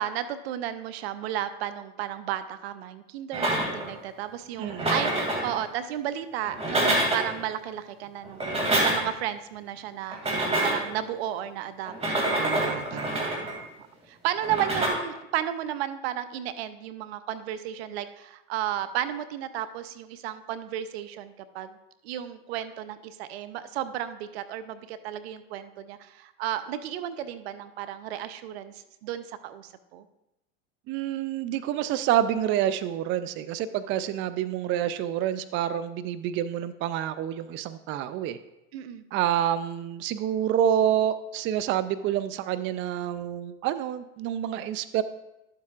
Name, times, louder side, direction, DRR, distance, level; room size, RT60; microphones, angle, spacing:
voice 1, 0.0-10.2 10.6-13.2 14.1-21.8 22.0-30.0 38.7-39.0, right 11 dB, 75° right, 12 dB, 0.7 m, -33 dB
sound 1, 3.3-4.0 4.6-5.5 6.4-7.4 8.2-9.2 10.1-10.9 11.9-13.6 14.4-14.9, right 1 dB, 20° right, 2.6 m, -26 dB
voice 2, 4.6-4.9 12.4-13.4 30.9-38.4 39.1-45.0, right 10 dB, 40° right, 13 dB, 0.4 m, -28 dB
11.5 x 7.4 x 2.5 m, 0.91 s
hypercardioid pair, 95°, 31 cm